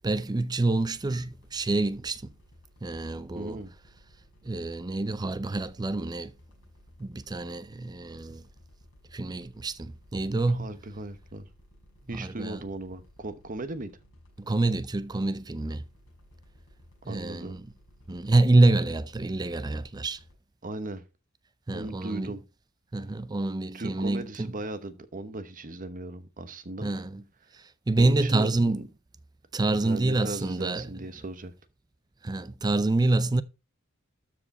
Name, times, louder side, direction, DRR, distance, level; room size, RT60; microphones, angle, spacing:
voice 1, 0.0-2.2 2.8-3.6 4.4-6.3 7.0-8.4 9.1-10.7 12.1-12.6 14.4-15.8 17.1-17.7 18.1-20.2 21.7-22.4 22.9-24.5 26.8-27.2 27.5-28.8 29.5-30.9 32.2-33.4, right 2 dB, 20° right, 0.4 m, -27 dB
sound 1, 0.6-20.3, equal, 65° left, 6.2 m, -57 dB
voice 2, 3.3-3.7 10.5-11.5 12.1-13.9 17.1-17.6 20.6-21.0 21.7-22.4 23.7-26.9 28.0-28.8 29.7-31.5, right 2 dB, 40° right, 1.0 m, -37 dB
13.0 x 4.9 x 4.2 m
head